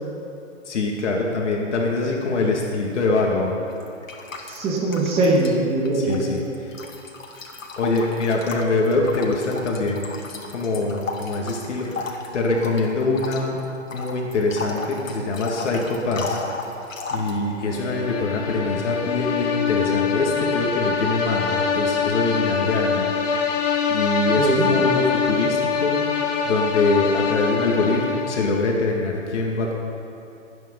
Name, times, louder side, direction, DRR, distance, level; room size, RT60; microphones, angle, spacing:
voice 1, 0.7-3.6 5.9-6.7 7.8-10.1 10.5-13.6 13.9-16.4 17.1-23.1 23.9-26.0 26.5-29.7, left 3 dB, 65° left, -1 dB, 2.4 m, -24 dB
sound 1, 3.7-5.6 5.8-17.4, left 3 dB, 90° left, 2.4 m, -35 dB
voice 2, 4.5-6.2 24.4-24.7, right 2 dB, 15° right, -2 dB, 2.0 m, -21 dB
sound 2, 17.7-28.7, left 6 dB, 35° left, 1.4 m, -24 dB
22.5 x 9.4 x 5.6 m, 2.7 s
hypercardioid pair, 155°, 38 cm